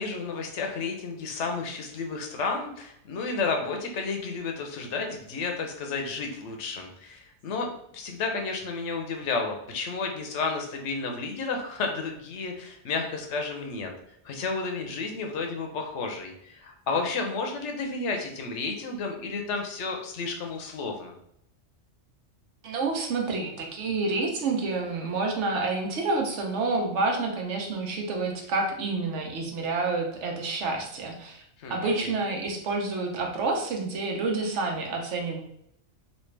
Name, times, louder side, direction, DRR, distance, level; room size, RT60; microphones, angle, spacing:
voice 1, 0.0-13.9 14.2-21.2 31.6-32.2, left 4 dB, 80° left, 3 dB, 1.0 m, -32 dB
voice 2, 22.6-31.4 31.7-35.4, right 3 dB, 75° right, 1 dB, 1.1 m, -28 dB
3.2 x 2.5 x 3.2 m, 0.74 s
omnidirectional pair, 1.2 m